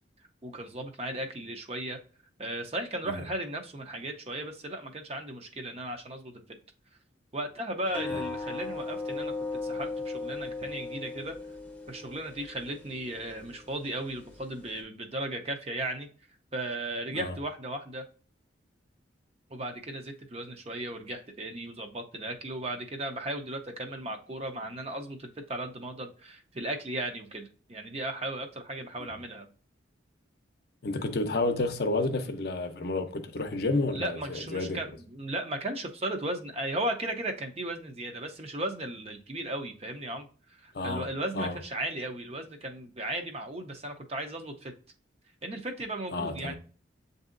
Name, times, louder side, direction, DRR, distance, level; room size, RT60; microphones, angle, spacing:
voice 1, 0.4-2.0 2.4-6.4 7.3-9.3 9.6-11.4 11.9-16.1 16.5-18.0 19.5-29.5 33.9-44.7 45.4-46.5, right 1 dB, 35° right, 0.6 m, -36 dB
sound 1, 7.9-14.8, left 3 dB, 5° left, 0.7 m, -38 dB
voice 2, 30.8-34.8 40.7-41.1 41.3-41.6 46.1-46.5, left 2 dB, 55° left, 0.6 m, -30 dB
7.9 x 2.7 x 2.5 m
head